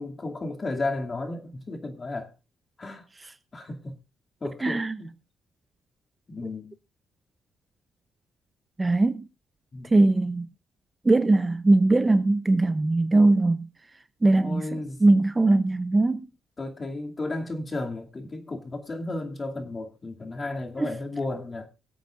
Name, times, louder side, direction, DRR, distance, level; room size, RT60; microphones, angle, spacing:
voice 1, 0.0-2.3 2.8-3.0 3.5-4.0 4.4-5.1 6.3-6.8 9.7-10.0 14.4-15.0 15.4-15.5 16.6-21.7, left 2 dB, 30° left, 2.4 m, -33 dB
voice 2, 4.6-5.0 8.8-9.2 9.9-10.5 11.0-13.7 14.2-16.3 20.8-20.9, right 2 dB, 20° right, 0.7 m, -21 dB
23.5 x 8.2 x 2.5 m
cardioid pair, 90°, 0 cm